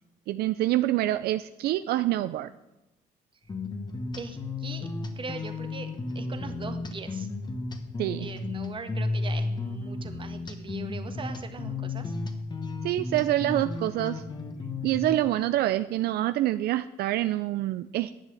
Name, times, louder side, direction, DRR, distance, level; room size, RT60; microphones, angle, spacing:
voice 1, 0.3-2.5 8.0-8.3 12.8-14.2 14.8-18.1, right 14 dB, 70° right, 12 dB, 0.5 m, -26 dB
sound 1, 3.5-15.2, left 3 dB, 25° left, 1.4 m, -34 dB
voice 2, 4.1-4.9 5.2-7.3 8.2-12.1, right 4 dB, 30° right, 7 dB, 1.5 m, -40 dB
10.5 x 7.5 x 7.8 m, 0.96 s
cardioid pair, 110°, 17 cm